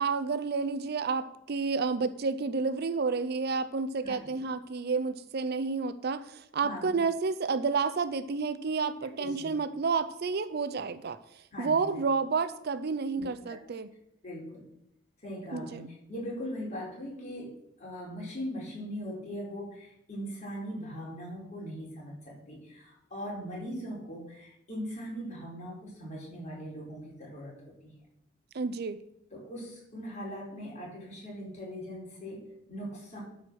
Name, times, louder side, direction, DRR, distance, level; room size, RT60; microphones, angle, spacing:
voice 1, 0.0-13.9 15.5-15.9 28.5-29.0, right 4 dB, 55° right, 14 dB, 0.5 m, -30 dB
voice 2, 4.0-4.4 6.6-6.9 9.2-9.5 11.5-11.7 13.1-13.6 14.2-14.6 15.2-17.5 17.8-27.9 29.3-33.2, equal, 40° left, -4 dB, 4.2 m, -40 dB
12.5 x 4.7 x 6.2 m, 0.79 s
head